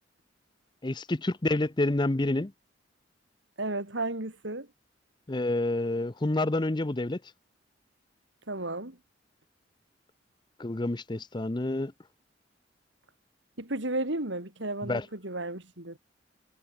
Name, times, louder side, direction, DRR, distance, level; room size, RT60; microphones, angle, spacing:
voice 1, 0.8-2.5 5.3-7.2 10.6-11.9 14.9-15.1, left 2 dB, 25° left, 0.7 m, -28 dB
voice 2, 3.6-4.7 8.5-9.0 13.6-16.0, right 2 dB, 70° right, 3.9 m, -33 dB
head